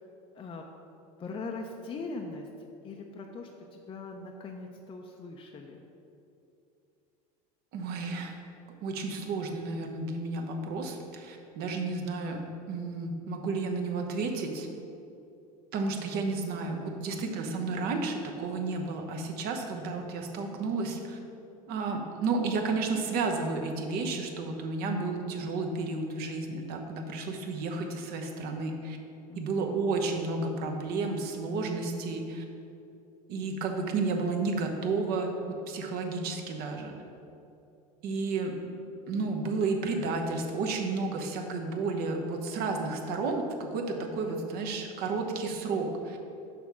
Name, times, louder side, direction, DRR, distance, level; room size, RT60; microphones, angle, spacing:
voice 1, 1.2-2.5 2.8-5.8 29.3-29.6 44.2-44.5, left 3 dB, 25° left, 1 dB, 0.5 m, -41 dB
voice 2, 7.7-8.3 8.8-12.4 12.7-14.7 15.7-21.2 21.7-29.0 29.4-32.4 33.3-37.0 38.0-38.5 39.1-46.2, right 3 dB, 55° right, 3 dB, 0.9 m, -32 dB
6.2 x 3.5 x 6.1 m, 2.7 s
supercardioid pair, 105°, 19 cm